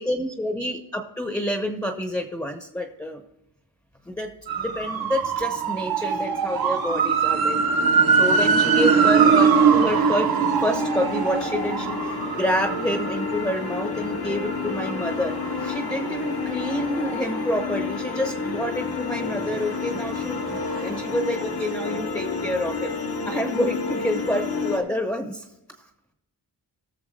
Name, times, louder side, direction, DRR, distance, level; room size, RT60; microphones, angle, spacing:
voice 1, 0.0-3.2 4.0-4.3 4.6-7.6 8.2-10.3 10.6-22.9 23.3-25.5 25.8-25.9, left 1 dB, 10° left, 4 dB, 1.0 m, -28 dB
sound 1, 4.5-18.2 18.6-21.2 21.4-21.5, right 6 dB, 65° right, 1.2 m, -23 dB
sound 2, 7.3-24.8, left 5 dB, 75° left, 1.9 m, -30 dB
18.5 x 7.0 x 3.2 m, 0.90 s
wide cardioid pair, 175°, 39 cm